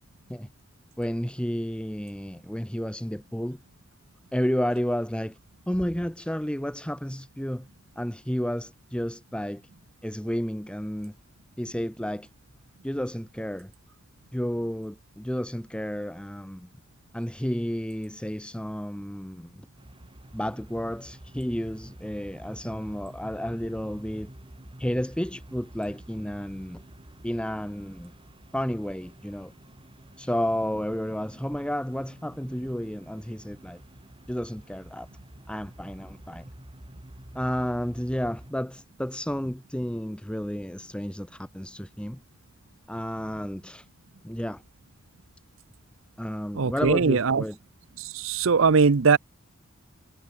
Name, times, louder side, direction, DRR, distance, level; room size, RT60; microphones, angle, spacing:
voice 1, 1.0-3.6 4.3-5.4 5.7-7.7 7.9-9.6 10.0-11.1 11.6-12.3 12.8-13.7 14.3-16.7 17.1-19.7 20.3-24.3 24.8-26.8 27.2-28.1 28.5-29.5 30.2-33.8 34.3-35.1 35.5-36.5 37.3-42.2 42.9-43.9 44.2-44.6 46.2-47.6, equal, 5° left, 1.3 m, -31 dB
sound 1, 19.8-38.5, right 1 dB, 25° right, 2.6 m, -48 dB
voice 2, 46.5-47.4 48.0-49.2, right 5 dB, 70° right, 0.7 m, -21 dB
head